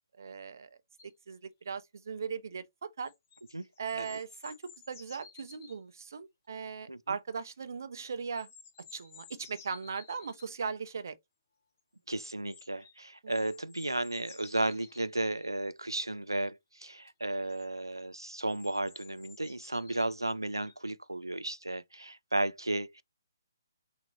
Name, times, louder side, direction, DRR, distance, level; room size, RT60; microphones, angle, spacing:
voice 1, 0.2-0.7 1.3-1.4 1.6-3.1 3.8-8.5 8.9-11.2 13.2-13.4, right 5 dB, 50° right, 0.8 m, -38 dB
sound 1, 1.0-1.1 3.1-5.8 8.0-10.5 12.5-12.9 13.3-15.5 17.1-17.2 17.5-17.6 18.5-20.1 20.6-20.7, left 5 dB, 35° left, 1.3 m, -55 dB
voice 2, 12.1-23.0, right 2 dB, 85° right, 0.5 m, -34 dB
6.1 x 2.9 x 2.8 m
figure-of-eight pair, 135°, 2 cm